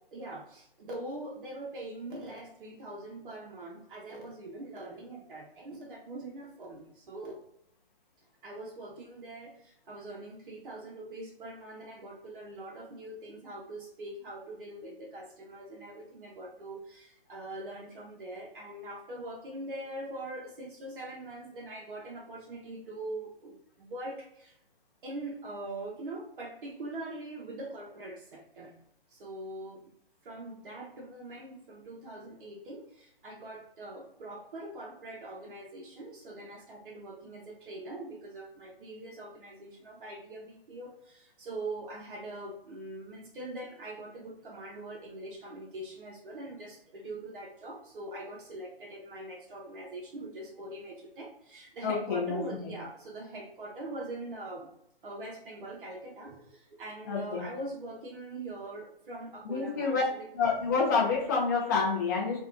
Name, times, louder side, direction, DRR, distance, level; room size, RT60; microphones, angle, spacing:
voice 1, 0.1-7.4 8.4-24.6 25.0-28.7 29.1-29.8 30.2-54.7 55.0-60.3, right 2 dB, 60° right, -2 dB, 0.6 m, -42 dB
voice 2, 51.8-52.7 57.0-57.4 59.4-60.0 60.3-62.4, left 5 dB, 20° left, -4 dB, 0.4 m, -28 dB
2.6 x 2.2 x 2.4 m, 0.76 s
hypercardioid pair, 140°, 29 cm